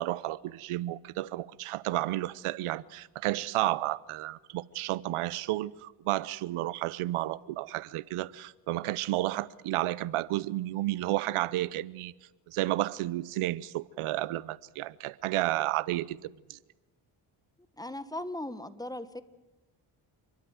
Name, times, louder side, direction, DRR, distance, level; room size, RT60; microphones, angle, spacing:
voice 1, 0.0-12.1 12.5-16.6, right 16 dB, 85° right, 0.8 m, -32 dB
voice 2, 17.8-19.2, left 1 dB, 10° left, 1.3 m, -38 dB
28.0 x 12.5 x 9.5 m
cardioid pair, 75°, 49 cm